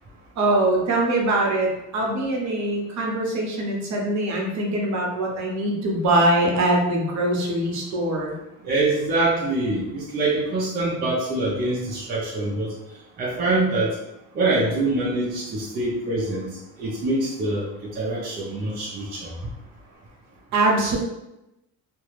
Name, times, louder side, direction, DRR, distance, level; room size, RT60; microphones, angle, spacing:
voice 1, 0.4-8.3 20.5-21.0, right 1 dB, 50° right, -1 dB, 0.7 m, -22 dB
voice 2, 8.6-12.7 13.2-13.9 14.3-16.5 16.8-17.7 17.9-19.3, right 2 dB, 25° right, -5 dB, 0.4 m, -24 dB
2.4 x 2.2 x 3.1 m, 0.92 s
cardioid pair, 155°, 37 cm